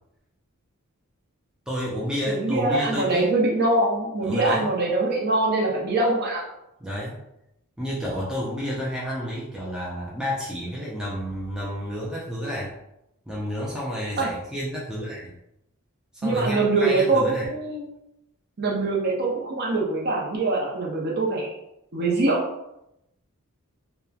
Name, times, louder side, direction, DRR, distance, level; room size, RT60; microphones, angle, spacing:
voice 1, 1.7-3.3 4.2-4.7 6.8-7.2 7.8-12.7 13.3-15.3 16.2-17.5, equal, 5° right, -6 dB, 0.4 m, -30 dB
voice 2, 2.3-6.4 14.2-14.3 16.2-17.8 18.6-21.5 21.9-22.4, right 2 dB, 45° right, -3 dB, 0.6 m, -23 dB
2.9 x 2.1 x 2.3 m, 0.84 s
head